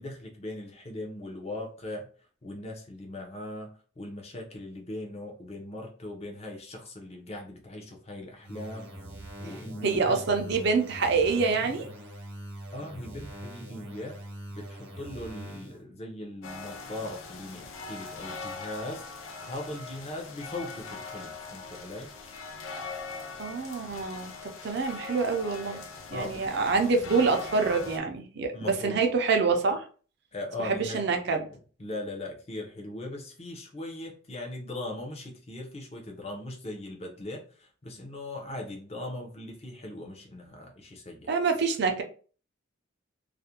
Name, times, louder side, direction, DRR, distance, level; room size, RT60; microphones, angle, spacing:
voice 1, 0.0-2.1 2.4-3.7 4.0-8.9 9.4-10.2 12.7-14.2 14.5-22.1 25.7-25.8 26.1-26.5 28.5-29.0 30.3-31.0 31.3-31.4 31.8-41.3, left 1 dB, 30° left, 2 dB, 0.6 m, -39 dB
sound 1, 8.4-15.8, right 1 dB, 70° right, 0.8 m, -43 dB
voice 2, 9.8-11.9 23.4-25.8 26.1-29.9 30.6-31.4 41.3-42.0, right 4 dB, 55° right, 4 dB, 0.4 m, -26 dB
sound 2, 16.4-28.0, left 4 dB, 80° left, 0.5 m, -41 dB
2.4 x 2.1 x 2.8 m, 0.40 s
head